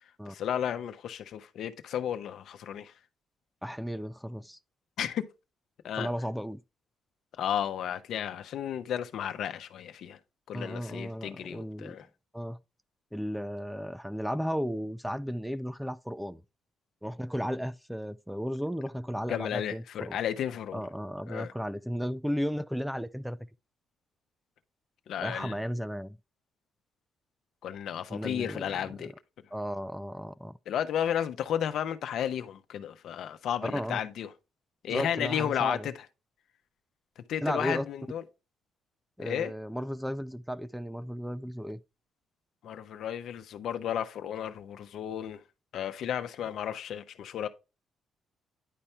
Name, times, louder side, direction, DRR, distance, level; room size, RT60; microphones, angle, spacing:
voice 1, 0.3-2.9 5.0-5.2 5.8-6.1 7.4-10.2 10.5-12.1 19.3-20.8 21.3-21.5 25.1-25.5 27.6-29.1 30.7-34.3 34.8-35.9 37.3-38.2 39.2-39.5 42.6-45.4 45.7-47.5, left 9 dB, 75° left, 0.8 m, -33 dB
voice 2, 3.6-4.6 6.0-6.6 10.5-12.0 12.3-12.6 13.1-16.4 17.0-20.2 20.7-23.4 25.2-26.2 28.1-29.1 29.5-30.5 33.6-34.0 34.9-35.9 37.4-37.8 39.2-41.8, equal, ahead, 0.4 m, -34 dB
10.0 x 4.3 x 3.3 m
cardioid pair, 90°, 0 cm